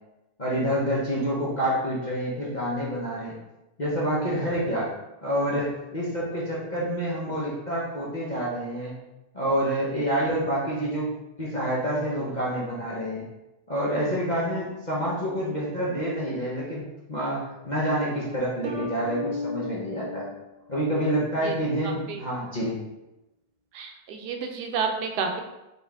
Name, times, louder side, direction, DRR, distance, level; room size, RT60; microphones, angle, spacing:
voice 1, 0.4-3.3 3.8-4.9 5.2-9.0 9.3-11.1 11.4-13.2 13.7-20.3 20.7-22.8, equal, 35° left, -6 dB, 0.8 m, -28 dB
sound 1, 18.6-21.3, left 3 dB, 60° right, 1.1 m, -35 dB
voice 2, 21.8-22.2 23.7-25.4, right 5 dB, 80° right, 4 dB, 1.1 m, -30 dB
4.2 x 3.5 x 3.5 m, 0.97 s
omnidirectional pair, 1.8 m